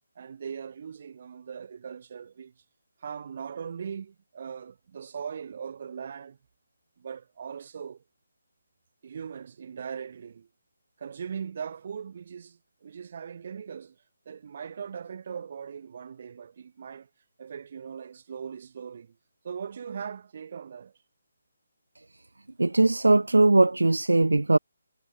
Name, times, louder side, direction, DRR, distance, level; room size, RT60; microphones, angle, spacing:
voice 1, 0.1-2.5 3.0-6.4 7.0-8.0 9.0-10.5 11.0-17.1 17.4-19.2 19.4-21.0, right 7 dB, 45° right, 1.6 m, -40 dB
voice 2, 22.6-24.6, right 2 dB, 80° right, 0.5 m, -20 dB
figure-of-eight pair, 150°, 0 cm